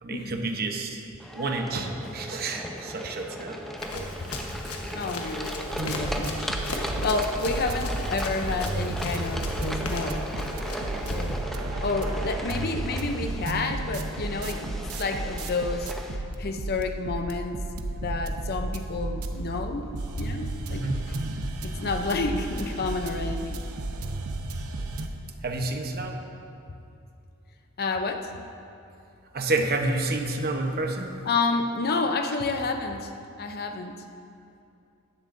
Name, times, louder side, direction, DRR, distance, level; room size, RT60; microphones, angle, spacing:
voice 1, 0.0-1.0 1.3-4.1 20.7-21.0 24.8-24.9 25.4-26.2 29.3-31.1, right 2 dB, 45° right, 3 dB, 0.9 m, -29 dB
sound 1, 1.2-16.2, equal, ahead, 0.7 m, -37 dB
Run, 3.8-11.4, left 2 dB, 80° left, 1.2 m, -37 dB
voice 2, 4.9-6.5 7.0-10.3 11.1-11.4 11.8-15.9 16.4-17.6 18.0-21.1 21.6-23.6 27.8-28.4 31.2-33.1 33.4-34.0, left 3 dB, 45° left, 6 dB, 0.6 m, -30 dB
sound 2, 5.7-25.1, right 2 dB, 80° right, 0.8 m, -33 dB
15.5 x 11.0 x 2.6 m, 2.6 s
head